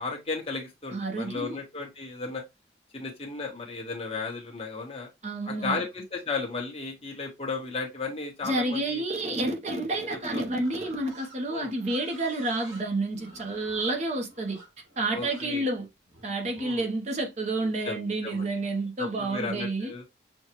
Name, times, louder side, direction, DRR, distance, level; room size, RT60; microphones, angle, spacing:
voice 1, 0.0-2.4 2.9-5.1 5.5-9.0 10.3-10.4 11.5-11.7 15.1-15.6 16.6-16.9 17.8-18.5 19.0-20.0, left 4 dB, 30° left, 1.2 m, -34 dB
voice 2, 0.9-1.6 5.2-5.8 8.4-14.6 15.0-15.9 16.2-19.9, right 2 dB, 40° right, 0.8 m, -29 dB
Livestock farm animals working animals, 10.6-16.6, right 1 dB, 85° right, 2.2 m, -51 dB
6.3 x 2.3 x 3.0 m
head